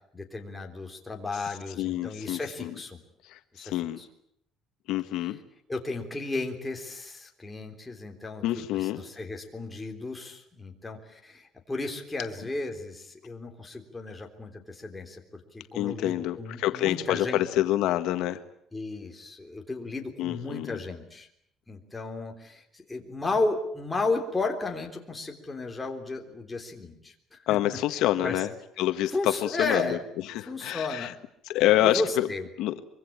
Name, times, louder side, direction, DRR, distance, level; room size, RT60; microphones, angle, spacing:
voice 1, 0.1-3.0 3.5-4.1 5.7-17.4 18.7-21.3 21.7-27.4 28.2-28.4 29.1-30.0 30.4-31.1 31.8-32.5, left 3 dB, 10° left, 2 dB, 3.6 m, -34 dB
voice 2, 1.8-2.7 3.2-4.0 4.9-5.4 8.4-9.0 15.7-18.4 20.2-20.8 27.5-28.5 28.8-30.0 30.3-31.1 31.5-32.3 32.6-32.7, left 13 dB, 75° left, 8 dB, 1.5 m, -27 dB
24.5 x 23.5 x 8.9 m, 0.72 s
cardioid pair, 155°, 0 cm